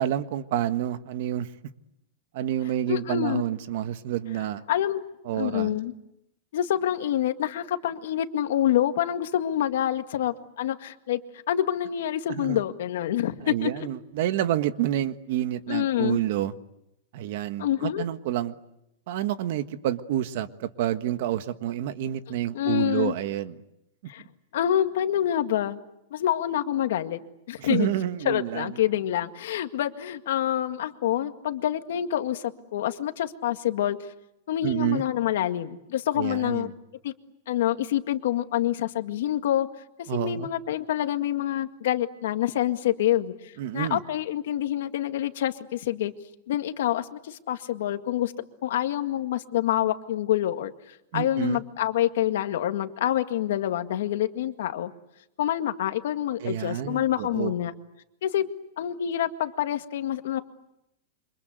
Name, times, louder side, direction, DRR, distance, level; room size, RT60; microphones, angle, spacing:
voice 1, 0.0-1.5 2.3-4.6 5.2-5.7 12.3-12.6 13.4-16.5 17.1-18.5 19.1-23.6 27.6-28.7 34.6-35.0 36.2-36.7 40.1-40.5 43.6-44.0 51.1-51.6 56.4-57.5, right 12 dB, 50° right, 10 dB, 1.5 m, -28 dB
voice 2, 2.9-3.4 4.7-5.0 5.4-5.9 6.5-11.2 11.5-13.7 15.7-16.2 17.6-18.0 22.5-23.1 24.1-24.2 24.5-25.8 26.1-27.2 27.5-27.9 28.3-34.0 34.5-36.7 37.0-37.1 37.5-39.7 40.1-46.1 46.5-48.3 48.6-54.9 55.4-57.7 58.2-58.5 58.8-60.4, left 11 dB, 65° left, 8 dB, 1.9 m, -27 dB
28.5 x 25.5 x 8.1 m, 0.84 s
supercardioid pair, 170°, 0 cm